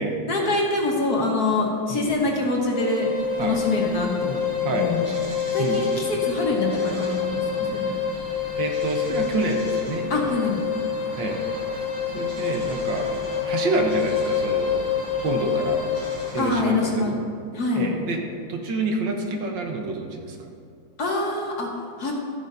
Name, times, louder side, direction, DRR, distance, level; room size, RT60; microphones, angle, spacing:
voice 1, 0.3-3.1 3.4-4.4 4.7-5.1 5.5-8.0 10.1-10.6 16.4-17.1 17.5-17.9 21.0-21.7 22.0-22.1, left 2 dB, 55° left, -1 dB, 1.6 m, -25 dB
sound 1, 2.7-16.4, left 7 dB, 35° left, 2.4 m, -27 dB
sound 2, 3.1-16.5, equal, 35° right, 3.1 m, -40 dB
voice 2, 4.6-4.9 5.6-5.8 8.6-10.4 11.2-11.4 11.7-11.9 12.1-13.1 13.4-14.7 15.2-15.8 16.3-17.1 17.7-18.2 18.5-20.5, right 2 dB, 70° right, 2 dB, 1.6 m, -28 dB
13.0 x 9.7 x 2.6 m, 2.2 s
omnidirectional pair, 2.2 m